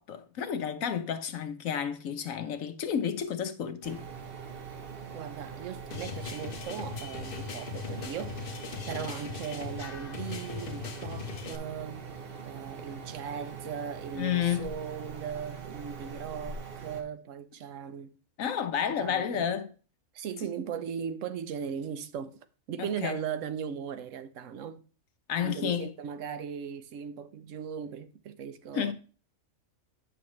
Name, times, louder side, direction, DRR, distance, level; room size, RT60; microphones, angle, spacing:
voice 1, 0.0-4.0 14.1-14.7 18.4-19.7 22.8-23.2 25.3-25.9 28.7-28.9, left 8 dB, 75° left, 1.2 m, -31 dB
sound 1, 3.8-17.0, right 6 dB, 45° right, 1.1 m, -43 dB
voice 2, 5.1-8.4 8.9-12.1 12.4-18.1 19.0-19.5 20.1-24.8 25.4-28.9, right 7 dB, 70° right, 1.1 m, -38 dB
sound 2, 5.9-11.6, left 7 dB, 45° left, 0.9 m, -39 dB
9.2 x 6.1 x 3.1 m
omnidirectional pair, 1.4 m